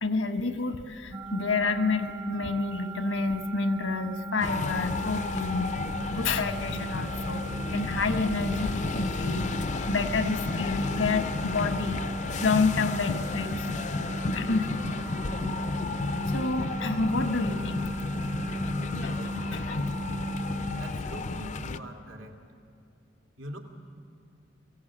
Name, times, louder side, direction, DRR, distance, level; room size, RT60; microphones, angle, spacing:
voice 1, 0.0-5.8 6.1-12.0 12.4-13.7 14.3-14.7 16.2-17.8 19.0-19.9, left 4 dB, 85° left, 8 dB, 1.2 m, -29 dB
sound 1, 1.1-20.9, right 1 dB, 20° right, 0.5 m, -37 dB
sound 2, 4.4-21.8, left 3 dB, 40° left, 0.5 m, -32 dB
voice 2, 20.8-22.4 23.4-23.6, right 1 dB, 90° right, 1 dB, 2.5 m, -42 dB
22.5 x 16.0 x 8.6 m, 2.4 s
head